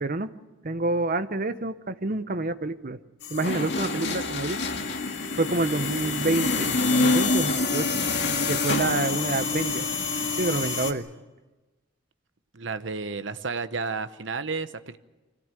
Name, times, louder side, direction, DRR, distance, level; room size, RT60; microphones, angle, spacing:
voice 1, 0.0-0.3 0.6-3.0 3.3-4.6 5.4-7.9 8.5-9.9 10.4-11.1, right 2 dB, 50° right, 12 dB, 0.9 m, -28 dB
sound 1, 3.2-10.9, left 3 dB, 65° left, 2.0 m, -26 dB
voice 2, 12.5-15.0, right 4 dB, 75° right, 12 dB, 1.0 m, -32 dB
25.0 x 17.0 x 9.1 m, 1.2 s
head